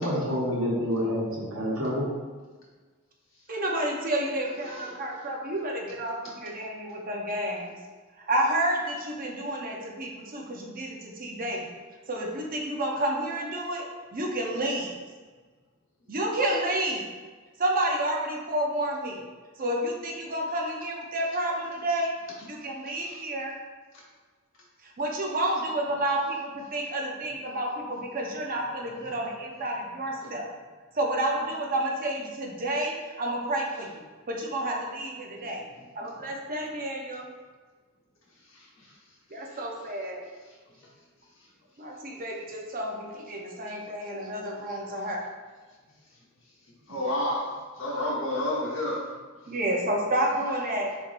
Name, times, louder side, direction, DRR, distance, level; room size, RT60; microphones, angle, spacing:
voice 1, 0.0-2.1, equal, 80° right, -4 dB, 1.2 m, -28 dB
voice 2, 3.5-7.8 8.3-11.7 12.1-14.9 16.1-17.1 17.6-19.2 19.6-22.1 22.4-23.6 24.8-30.5 30.9-35.7 35.9-37.3 39.3-40.3 41.8-45.2 49.5-50.9, right 1 dB, 45° right, 0 dB, 0.7 m, -30 dB
voice 3, 38.5-38.9 46.9-47.5 47.8-49.0, left 1 dB, 65° left, -5 dB, 1.3 m, -30 dB
4.5 x 4.1 x 2.6 m, 1.4 s
head